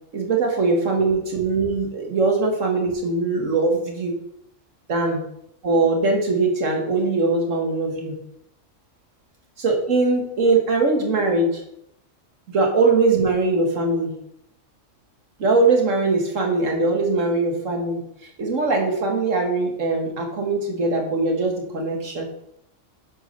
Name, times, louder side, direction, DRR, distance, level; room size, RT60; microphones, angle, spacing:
voice 1, 0.1-4.2 4.9-5.2 5.6-8.1 9.6-11.6 12.5-14.1 15.4-18.0 18.4-22.3, right 3 dB, 85° right, 2 dB, 2.1 m, -21 dB
8.6 x 4.8 x 6.6 m, 0.76 s
omnidirectional pair, 1.3 m